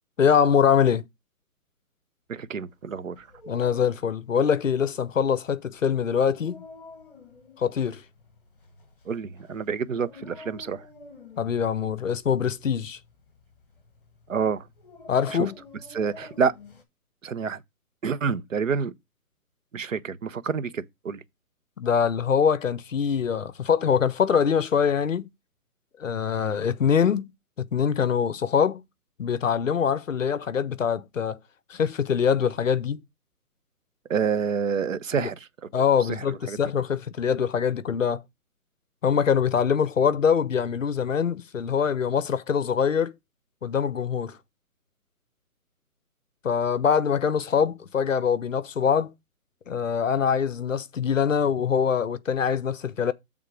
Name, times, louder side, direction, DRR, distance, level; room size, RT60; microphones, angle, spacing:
voice 1, 0.2-1.0 3.5-6.6 7.6-8.0 11.4-13.0 15.1-15.5 21.8-25.3 26.0-27.3 27.6-28.8 29.2-31.4 31.7-33.0 35.2-35.3 35.7-38.2 39.0-43.1 43.6-44.4 46.4-49.1 49.7-53.1, left 7 dB, 55° left, 0.7 m, -24 dB
voice 2, 2.3-3.3 9.0-10.9 14.3-14.7 15.3-15.5 15.9-16.5 17.2-17.6 18.0-18.9 19.7-21.2 34.1-35.7 36.0-36.6, right 6 dB, 60° right, 0.8 m, -28 dB
Dog, 3.1-16.8, left 3 dB, 35° left, 1.3 m, -49 dB
6.9 x 3.7 x 6.1 m
hypercardioid pair, 175°, 45 cm